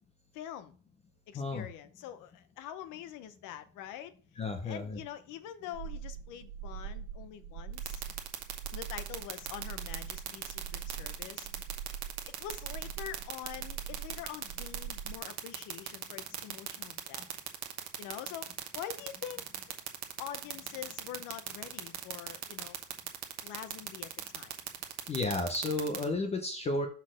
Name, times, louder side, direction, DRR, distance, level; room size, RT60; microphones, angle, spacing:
voice 1, 0.3-0.7 1.3-4.1 4.6-8.0 8.7-11.5 12.3-17.2 18.0-19.8 20.2-22.8 23.4-24.6, left 10 dB, 45° left, 0.7 m, -45 dB
voice 2, 1.3-1.7 4.4-5.0 25.1-26.9, left 2 dB, 15° left, 0.4 m, -32 dB
sound 1, 5.7-15.2, right 8 dB, 65° right, 1.4 m, -43 dB
sound 2, 7.8-26.0, right 13 dB, 40° right, 1.1 m, -37 dB
6.3 x 4.0 x 6.2 m
cardioid pair, 175°, 42 cm